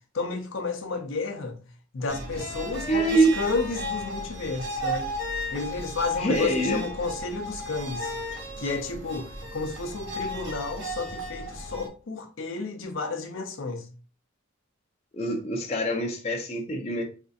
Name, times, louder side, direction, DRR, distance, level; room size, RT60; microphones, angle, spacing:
voice 1, 0.1-1.6 1.9-5.1 5.5-8.1 8.6-13.9, left 4 dB, 75° left, 0.6 m, -32 dB
sound 1, 2.1-11.9, equal, 60° right, 1.2 m, -34 dB
voice 2, 2.9-3.3 6.2-6.8 15.1-17.0, right 2 dB, 30° left, 0.5 m, -24 dB
4.2 x 2.6 x 2.3 m
head